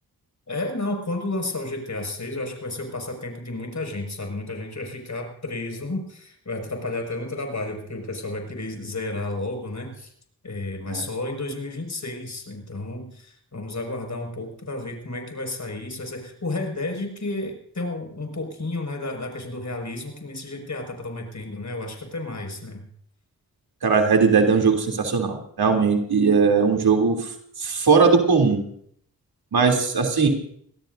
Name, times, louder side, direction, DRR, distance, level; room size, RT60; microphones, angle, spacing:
voice 1, 0.5-10.1 10.4-22.8, left 2 dB, 50° left, 3 dB, 6.1 m, -32 dB
voice 2, 23.8-27.3 27.6-28.6 29.5-30.3, right 5 dB, 80° right, 2 dB, 3.3 m, -19 dB
25.5 x 17.5 x 2.7 m, 0.63 s
cardioid pair, 40°, 37 cm